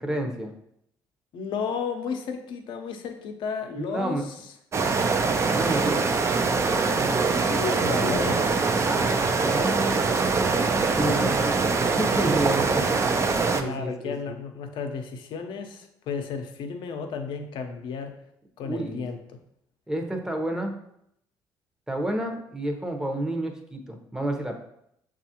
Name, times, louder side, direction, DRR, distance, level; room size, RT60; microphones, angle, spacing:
voice 1, 0.0-0.5 3.7-4.2 5.4-6.1 6.8-7.4 8.8-11.6 11.9-12.9 13.6-14.1 18.6-19.1 19.9-20.7 21.9-24.6, right 1 dB, 5° right, 3 dB, 0.8 m, -30 dB
voice 2, 1.3-4.4 7.3-8.6 13.6-18.2 18.6-19.2, left 5 dB, 75° left, 5 dB, 0.7 m, -33 dB
sound 1, 4.7-13.6, right 4 dB, 35° right, 0.4 m, -23 dB
6.9 x 2.4 x 2.8 m, 0.75 s
cardioid pair, 85°, 8 cm